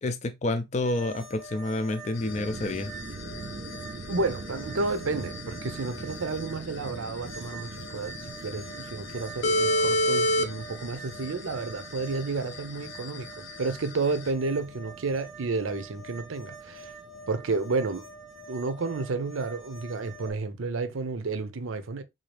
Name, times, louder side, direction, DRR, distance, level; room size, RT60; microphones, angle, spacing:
voice 1, 0.0-2.9, left 2 dB, 35° left, 0.3 m, -29 dB
sound 1, 0.8-20.3, right 2 dB, 5° right, 0.7 m, -46 dB
sound 2, 2.1-20.9, right 3 dB, 45° right, 0.4 m, -44 dB
sound 3, 2.2-14.3, left 1 dB, 70° left, 0.6 m, -31 dB
voice 2, 4.1-8.2 8.4-16.9 17.3-18.1 18.5-22.0, right 3 dB, 85° right, 0.6 m, -31 dB
3.7 x 2.7 x 3.2 m
head